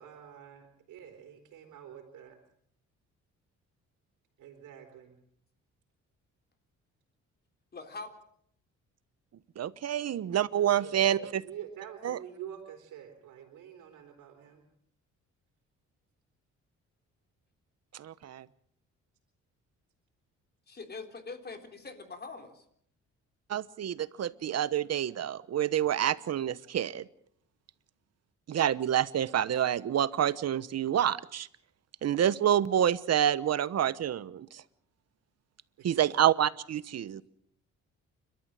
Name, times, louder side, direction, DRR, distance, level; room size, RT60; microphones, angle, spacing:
voice 1, 0.0-2.4 4.4-5.2 10.8-14.7 35.8-36.2, right 9 dB, 90° right, 3 dB, 3.8 m, -47 dB
voice 2, 7.7-8.1 20.7-22.6, left 3 dB, 35° left, 6 dB, 3.8 m, -43 dB
voice 3, 9.6-11.4 12.0-12.2 17.9-18.4 23.5-27.0 28.5-31.5 32.0-34.5 35.8-37.2, right 10 dB, 55° right, 16 dB, 1.1 m, -28 dB
29.5 x 13.0 x 7.6 m, 0.69 s
cardioid pair, 90°, 30 cm